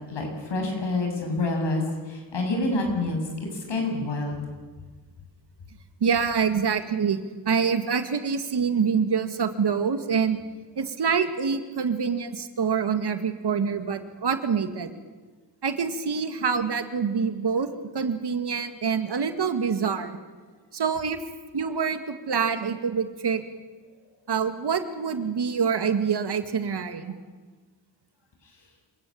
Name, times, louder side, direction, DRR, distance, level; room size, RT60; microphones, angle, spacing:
voice 1, 0.1-4.4, left 2 dB, 65° left, 2 dB, 7.4 m, -27 dB
voice 2, 6.0-7.2 7.5-10.4 10.8-14.9 15.6-17.7 17.9-20.2 20.7-21.2 21.5-23.4 24.3-27.1, right 6 dB, 60° right, 8 dB, 2.1 m, -26 dB
27.0 x 16.5 x 8.7 m, 1.4 s
cardioid pair, 70°, 45 cm